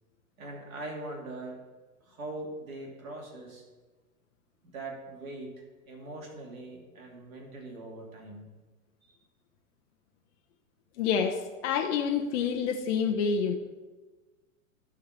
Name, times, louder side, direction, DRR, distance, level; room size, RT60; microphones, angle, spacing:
voice 1, 0.4-1.6 2.0-3.6 4.6-8.5 9.0-9.2, right 2 dB, 70° right, 0 dB, 2.8 m, -42 dB
voice 2, 11.0-11.4 11.6-13.5, left 6 dB, 55° left, 2 dB, 1.0 m, -27 dB
11.5 x 5.0 x 6.0 m, 1.3 s
figure-of-eight pair, 105°, 42 cm